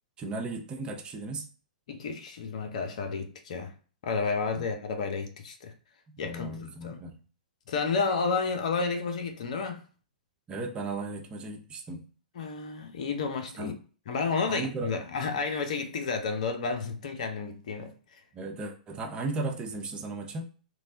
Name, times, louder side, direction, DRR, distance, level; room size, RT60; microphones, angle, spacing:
voice 1, 0.2-1.5 4.5-4.7 6.2-7.2 10.5-12.0 13.6-13.8 14.5-14.9 18.3-20.4, right 3 dB, 20° right, 0.6 m, -35 dB
voice 2, 1.9-3.7 4.0-5.7 6.2-7.0 7.7-9.8 12.4-13.8 14.1-17.9, left 4 dB, 60° left, 0.7 m, -31 dB
3.0 x 2.2 x 2.7 m
figure-of-eight pair, 110°, 4 cm